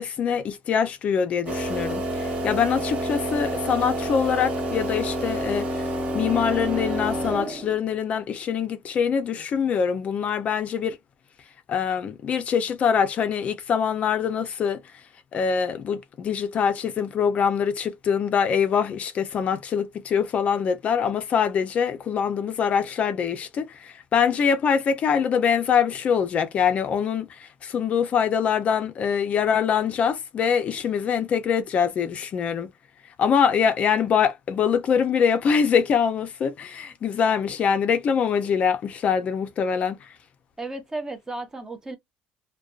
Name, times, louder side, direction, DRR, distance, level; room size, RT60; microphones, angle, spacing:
voice 1, 0.0-5.9 6.1-11.0 11.7-14.8 15.3-32.7 33.2-40.1, left 7 dB, 40° left, 0.4 m, -24 dB
sound 1, 1.5-7.8, right 1 dB, 35° right, 0.8 m, -28 dB
voice 2, 40.6-42.0, right 2 dB, 15° right, 0.5 m, -34 dB
2.5 x 2.2 x 2.3 m
cardioid pair, 140°, 4 cm